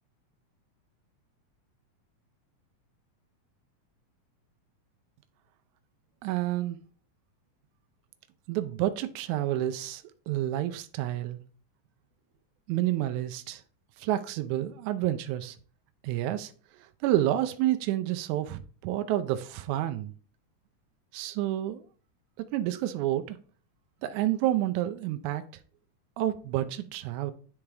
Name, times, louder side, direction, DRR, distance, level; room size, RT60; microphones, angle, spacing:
voice 1, 6.2-6.8 8.5-11.4 12.7-13.6 14.0-15.6 16.0-16.5 16.8-20.1 21.1-21.8 22.5-23.4 24.0-25.4 26.2-27.3, right 13 dB, 80° right, 1.8 m, -29 dB
9.6 x 3.5 x 3.3 m
omnidirectional pair, 3.6 m